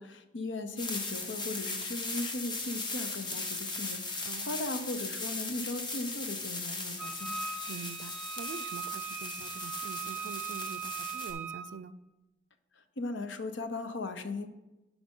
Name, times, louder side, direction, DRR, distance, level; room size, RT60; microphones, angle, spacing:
voice 1, 0.0-7.3 13.0-14.5, left 2 dB, 85° left, 9 dB, 0.7 m, -38 dB
sound 1, 0.8-11.3, left 3 dB, 25° left, 0.9 m, -38 dB
voice 2, 4.2-4.6 7.7-12.0, right 5 dB, 80° right, 16 dB, 0.4 m, -45 dB
Wind instrument woodwind instrument, 7.0-11.7, right 6 dB, 5° right, 0.7 m, -40 dB
11.0 x 5.0 x 3.7 m, 1.0 s
head